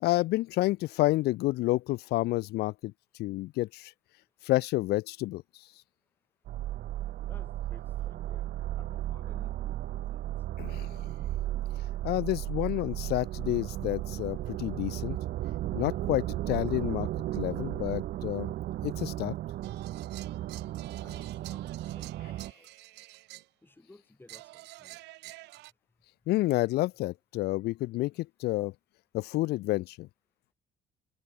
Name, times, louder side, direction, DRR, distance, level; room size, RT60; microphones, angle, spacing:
voice 1, 0.0-2.9 3.2-3.9 4.4-5.6 10.6-10.9 12.0-15.2 15.7-17.1 17.4-18.5 18.8-19.3 26.3-28.7 29.1-30.1, left 18 dB, 75° left, 0.5 m, -29 dB
sound 1, 6.5-22.5, right 14 dB, 65° right, 0.9 m, -35 dB
voice 2, 7.3-10.3 21.0-21.7 21.9-22.7 23.6-25.0, left 2 dB, 10° left, 6.4 m, -57 dB
sound 2, 19.6-23.5 24.3-25.7, right 20 dB, 90° right, 3.8 m, -49 dB
open air
cardioid pair, 110°, 17 cm